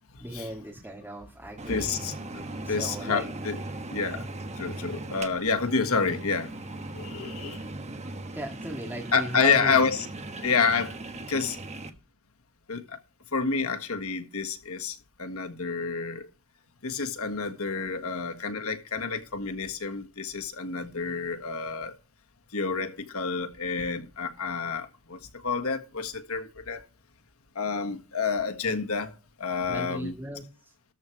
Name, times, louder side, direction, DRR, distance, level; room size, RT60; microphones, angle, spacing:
voice 1, 0.2-2.0 2.6-3.3 8.3-9.8 29.7-30.7, right 1 dB, 10° right, 2.0 m, -37 dB
sound 1, 1.6-11.9, right 2 dB, 30° right, 1.2 m, -39 dB
voice 2, 1.7-2.1 2.7-3.6 3.9-4.3 4.6-6.5 6.9-7.6 9.1-10.1 10.4-10.9 11.3-11.6 12.7-13.0 13.3-16.3 16.8-21.9 22.5-25.2 25.4-26.8 27.5-29.1 29.4-30.1, left 5 dB, 80° left, 1.6 m, -29 dB
13.5 x 4.6 x 6.1 m
head